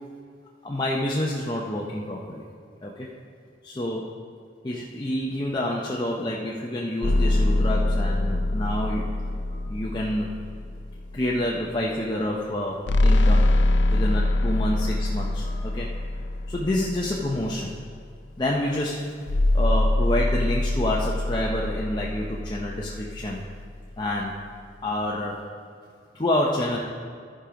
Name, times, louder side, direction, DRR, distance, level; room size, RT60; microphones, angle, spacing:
voice 1, 0.6-2.4 2.8-3.1 3.6-4.1 4.6-9.2 9.5-10.4 11.1-13.5 13.9-15.9 16.5-17.7 18.4-19.1 19.5-23.5 24.0-24.3 24.8-25.4 26.1-26.8, left 1 dB, 25° left, -3 dB, 0.6 m, -28 dB
sound 1, 7.0-11.5 12.9-17.7 19.3-23.6, left 1 dB, 80° left, 0.5 m, -24 dB
14.0 x 5.0 x 5.0 m, 2.2 s
head